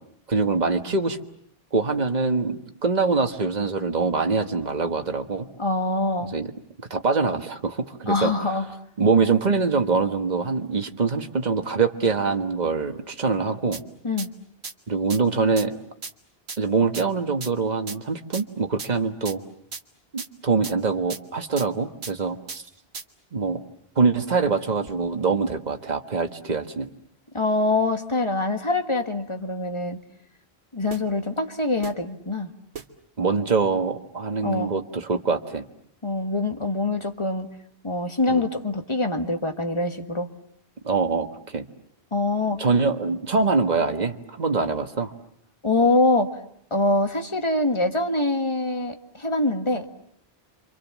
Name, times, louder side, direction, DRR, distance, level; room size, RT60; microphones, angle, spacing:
voice 1, 0.3-1.2 1.7-5.5 6.2-6.5 6.9-8.3 9.0-13.8 14.9-15.8 16.6-19.4 20.1-22.6 23.3-23.6 23.9-26.9 33.2-35.7 38.3-38.4 40.8-41.3 41.5-41.7 42.6-45.1, right 4 dB, 45° right, 6 dB, 1.5 m, -24 dB
voice 2, 5.6-6.3 8.1-8.7 14.0-14.3 27.3-30.0 30.7-32.5 34.4-34.7 36.0-37.5 37.8-40.3 42.1-42.6 45.6-46.3 46.7-49.9, left 2 dB, 30° left, 6 dB, 1.7 m, -24 dB
sound 1, 13.7-13.8 14.2-14.3 14.6-14.7 15.1-15.2 15.6-15.7 16.0-16.1 16.5-16.6 16.9-17.0 17.4-17.5 17.9-18.0 18.3-18.4 18.8-18.9 19.2-19.3 19.7-19.8 20.2-20.3 20.6-20.7 21.1-21.2 21.6-21.7 22.0-22.1 22.5-22.6 22.9-23.0 30.9-31.0 31.8-31.9 32.7-32.8, right 5 dB, 90° right, 1.7 m, -35 dB
29.0 x 26.0 x 7.3 m, 0.70 s
omnidirectional pair, 1.1 m